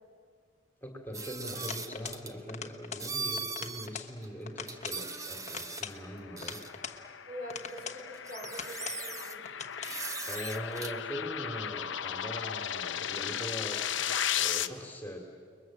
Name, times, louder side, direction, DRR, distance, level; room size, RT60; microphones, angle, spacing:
voice 1, 0.8-6.6 10.2-15.2, equal, 10° left, 2 dB, 2.7 m, -41 dB
sound 1, 1.1-2.3 3.0-3.9 4.2-4.3 4.7-5.9 6.4-6.7 7.7-7.8 8.1-9.3 9.8-10.9, right 4 dB, 15° right, 0.8 m, -39 dB
sound 2, 1.7-2.2 2.5-3.1 3.4-4.1 4.5-5.0 5.5-7.0 7.5-8.0 8.4-9.0 9.4-10.0, left 7 dB, 35° left, 1.2 m, -42 dB
sound 3, 5.8-14.7, left 9 dB, 60° left, 0.8 m, -36 dB
voice 2, 7.3-9.4, equal, 40° right, 2 dB, 4.8 m, -44 dB
29.5 x 21.5 x 7.7 m, 2.1 s
head